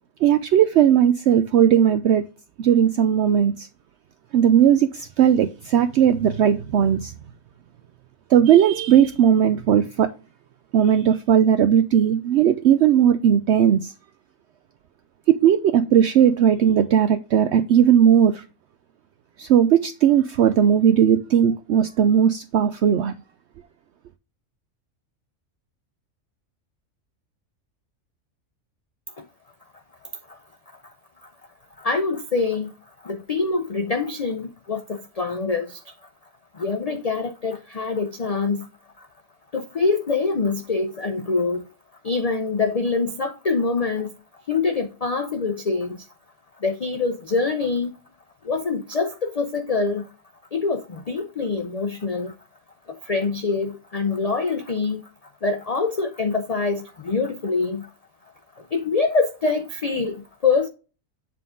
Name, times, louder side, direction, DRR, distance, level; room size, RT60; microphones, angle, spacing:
voice 1, 0.2-2.3 2.6-3.7 4.3-7.1 8.3-10.1 10.7-13.9 15.3-18.4 19.4-23.1, right 9 dB, 65° right, 0.8 m, -17 dB
voice 2, 31.8-32.7 33.0-35.9 36.5-38.7 39.0-39.1 39.5-41.6 42.0-44.1 44.5-46.1 46.6-47.9 48.4-50.1 50.5-52.3 52.9-55.0 55.4-57.9 58.6-60.7, left 4 dB, 40° left, 0.6 m, -25 dB
7.5 x 3.8 x 3.6 m
omnidirectional pair, 1.4 m